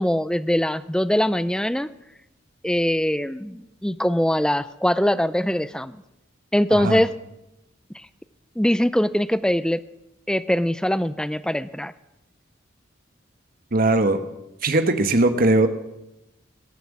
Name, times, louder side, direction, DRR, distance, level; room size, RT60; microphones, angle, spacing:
voice 1, 0.0-1.9 2.6-6.0 6.5-7.1 8.6-9.8 10.3-11.9, left 1 dB, 5° left, 15 dB, 0.4 m, -22 dB
voice 2, 6.7-7.0 13.7-14.2 14.6-15.7, right 2 dB, 50° right, 9 dB, 1.2 m, -19 dB
20.0 x 7.6 x 7.4 m, 0.91 s
head